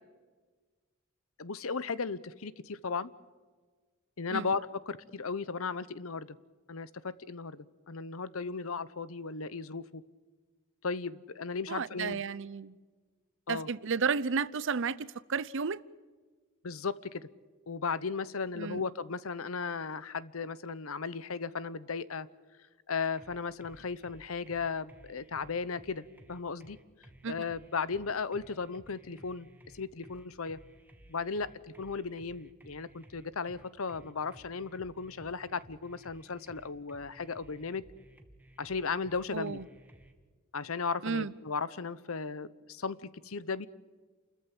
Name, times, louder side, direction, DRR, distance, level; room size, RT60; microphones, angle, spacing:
voice 1, 1.4-3.1 4.2-6.4 6.7-10.0 10.8-12.2 13.5-13.7 16.6-17.3 17.7-22.3 22.9-26.8 27.3-29.5 29.7-30.6 31.1-31.5 31.8-37.8 38.6-39.6 40.5-43.7, left 5 dB, 70° left, 0.9 m, -36 dB
voice 2, 11.7-12.8 13.5-15.8 18.6-18.8 27.2-27.3 39.3-39.6 41.0-41.3, right 5 dB, 60° right, 0.7 m, -32 dB
sound 1, 23.2-40.1, right 1 dB, 10° right, 1.7 m, -57 dB
29.0 x 14.0 x 8.8 m
head